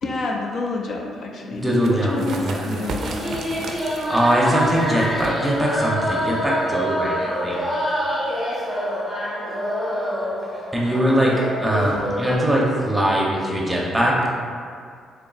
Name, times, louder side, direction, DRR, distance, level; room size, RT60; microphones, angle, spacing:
voice 1, 0.0-2.4 2.7-3.4, left 3 dB, 60° left, 0 dB, 0.5 m, -28 dB
voice 2, 1.4-2.7 4.1-7.7 10.7-14.2, right 1 dB, 10° right, -4 dB, 0.7 m, -21 dB
sound 1, 1.6-7.0, right 3 dB, 65° right, 0.4 m, -36 dB
sound 2, 3.0-12.4, equal, 10° left, 1.4 m, -26 dB
3.7 x 3.4 x 2.3 m, 2.1 s
cardioid pair, 90°, 0 cm